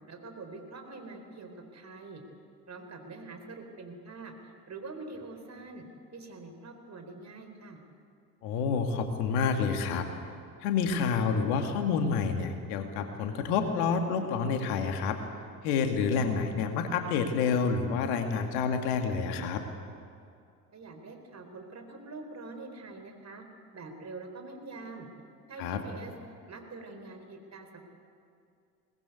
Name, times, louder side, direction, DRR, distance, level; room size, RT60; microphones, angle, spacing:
voice 1, 0.1-2.2 2.7-5.9 6.1-7.8 20.7-23.4 23.7-25.1 25.5-26.1 26.5-27.8, right 3 dB, 35° right, 5 dB, 4.2 m, -45 dB
voice 2, 8.4-10.1 10.6-15.2 15.6-19.6 25.6-25.8, left 5 dB, 65° left, 5 dB, 2.3 m, -28 dB
22.5 x 20.0 x 8.4 m, 2.4 s
figure-of-eight pair, 60°, 49 cm